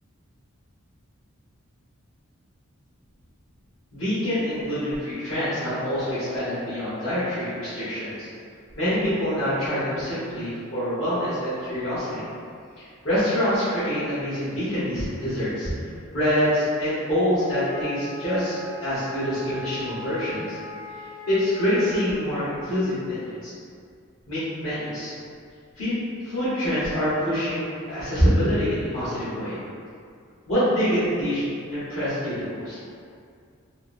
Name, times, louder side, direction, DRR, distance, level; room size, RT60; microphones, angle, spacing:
voice 1, 3.9-8.3 8.8-12.2 12.8-15.7 16.1-20.6 21.3-23.5 24.3-25.1 25.7-25.9 26.2-29.6 30.5-31.4 31.7-32.8, equal, 75° left, -15 dB, 1.0 m, -25 dB
Wind instrument woodwind instrument, 17.4-22.2, left 2 dB, 50° left, 0.9 m, -40 dB
2.9 x 2.0 x 2.5 m, 2.3 s
head